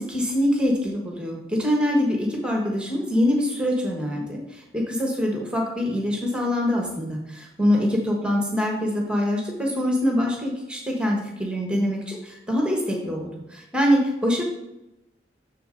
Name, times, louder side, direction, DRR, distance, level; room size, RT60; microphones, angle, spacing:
voice 1, 0.0-14.4, equal, 5° right, -1 dB, 1.2 m, -24 dB
6.8 x 6.5 x 3.8 m, 0.91 s
head